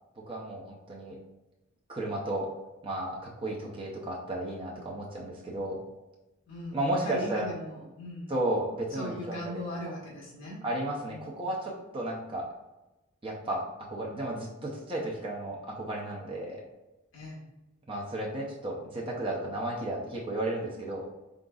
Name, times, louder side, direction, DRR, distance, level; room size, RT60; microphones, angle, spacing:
voice 1, 0.3-1.2 1.9-2.5 2.8-5.8 6.7-7.5 8.3-9.4 10.6-12.5 13.2-13.6 13.9-16.6 17.9-21.1, right 1 dB, 25° right, -3 dB, 0.6 m, -33 dB
voice 2, 6.4-8.3 8.9-10.6 11.0-11.4 17.1-17.4, left 1 dB, 65° left, -5 dB, 1.4 m, -39 dB
3.9 x 3.8 x 2.4 m, 1.0 s
head